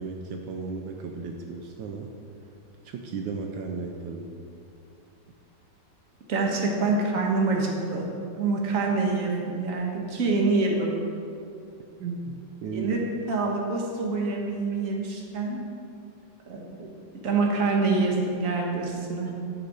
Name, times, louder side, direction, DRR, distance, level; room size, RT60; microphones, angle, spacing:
voice 1, 0.0-2.1 2.8-4.3 12.0-13.1, right 4 dB, 80° right, 2 dB, 1.4 m, -35 dB
voice 2, 6.3-8.1 8.4-11.0 12.7-13.0 13.3-15.6 16.5-16.9 17.2-19.3, right 3 dB, 50° right, 0 dB, 1.5 m, -26 dB
9.7 x 6.7 x 4.8 m, 2.5 s
omnidirectional pair, 2.0 m